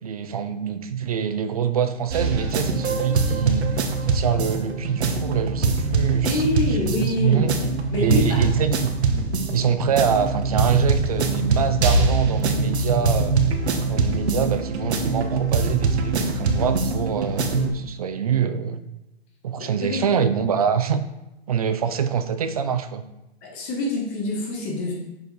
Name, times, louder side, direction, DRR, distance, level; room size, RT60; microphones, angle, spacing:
voice 1, 0.0-3.7 4.0-7.5 8.0-13.3 13.9-18.8 19.4-21.0 21.5-23.0, right 7 dB, 35° right, 11 dB, 0.5 m, -25 dB
sound 1, 2.1-17.7, right 3 dB, 85° right, 1.2 m, -23 dB
voice 2, 6.2-7.5 7.9-8.4 13.9-14.1 19.6-20.0 23.4-24.9, left 2 dB, 15° left, -2 dB, 1.0 m, -26 dB
7.5 x 6.9 x 3.2 m, 0.94 s
hypercardioid pair, 175°, 32 cm